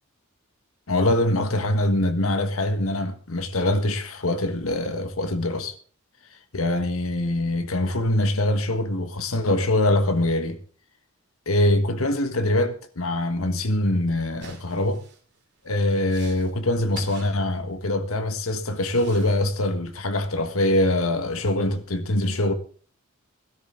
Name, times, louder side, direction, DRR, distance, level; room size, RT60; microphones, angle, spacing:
voice 1, 0.9-5.7 6.5-10.6 11.5-15.0 15.6-22.5, left 1 dB, 75° left, 1.5 m, -23 dB
sound 1, 14.4-18.0 18.6-19.4, right 3 dB, 50° right, 2.8 m, -46 dB
17.0 x 12.5 x 3.7 m
head